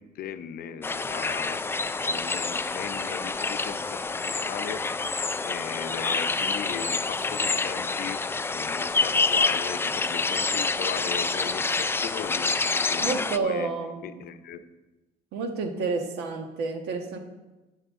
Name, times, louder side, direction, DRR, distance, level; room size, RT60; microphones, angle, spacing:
voice 1, 0.0-4.8 5.1-8.2 8.5-13.7 14.0-14.6, left 8 dB, 65° left, 10 dB, 0.8 m, -38 dB
sound 1, 0.8-13.4, left 3 dB, 15° left, 0.4 m, -27 dB
voice 2, 13.0-14.2 15.3-17.2, right 4 dB, 80° right, 4 dB, 1.5 m, -30 dB
13.5 x 9.0 x 3.7 m, 1.1 s
cardioid pair, 110°, 17 cm